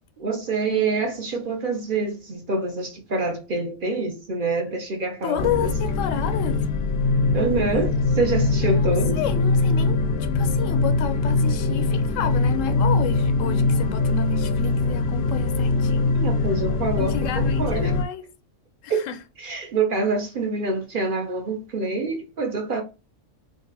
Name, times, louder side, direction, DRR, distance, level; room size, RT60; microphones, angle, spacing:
voice 1, 0.2-5.7 7.3-9.2 16.1-17.9 18.9-19.0 19.4-22.8, right 3 dB, 50° right, 0.7 m, -26 dB
voice 2, 5.2-6.7 8.7-16.2 17.0-18.3 18.8-19.2, left 7 dB, 85° left, 1.0 m, -30 dB
sound 1, 5.4-18.0, left 3 dB, 65° left, 0.7 m, -22 dB
3.8 x 2.5 x 2.7 m
omnidirectional pair, 1.3 m